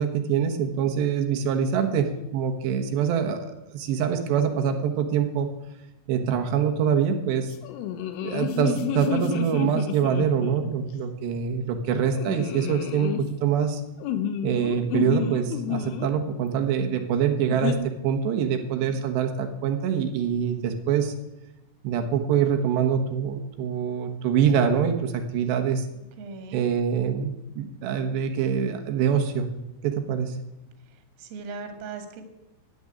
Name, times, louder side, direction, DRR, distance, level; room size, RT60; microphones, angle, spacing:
voice 1, 0.0-5.5 6.1-7.6 8.2-13.8 14.4-21.1 21.8-25.9 26.5-29.5 29.8-30.4, right 7 dB, 70° right, 5 dB, 3.1 m, -25 dB
sound 1, 7.6-10.7 12.1-13.2 14.0-16.1 17.5-17.8, left 8 dB, 85° left, 3.6 m, -30 dB
voice 2, 18.6-19.0 26.2-26.7 31.2-32.2, right 4 dB, 85° right, 6 dB, 4.4 m, -39 dB
13.5 x 8.0 x 9.8 m, 0.94 s
omnidirectional pair, 5.8 m